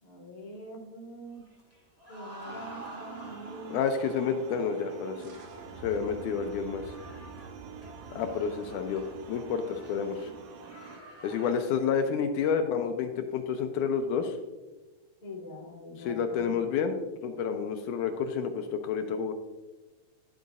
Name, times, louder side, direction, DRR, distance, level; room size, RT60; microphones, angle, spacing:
voice 1, 0.0-1.4 2.1-3.7 15.2-16.5, equal, 55° left, -3 dB, 0.4 m, -44 dB
sound 1, 1.4-11.9, right 1 dB, 25° right, 0.3 m, -50 dB
sound 2, 2.4-11.0, right 8 dB, 80° right, 2.3 m, -47 dB
voice 2, 3.7-5.4 5.8-6.9 8.1-9.0 9.3-10.3 11.2-14.4 16.0-17.0 17.2-19.3, left 6 dB, 80° left, 6 dB, 1.9 m, -29 dB
sound 3, 5.2-10.7, right 2 dB, 60° right, 2.6 m, -49 dB
11.5 x 7.8 x 2.5 m, 1.2 s
omnidirectional pair, 3.9 m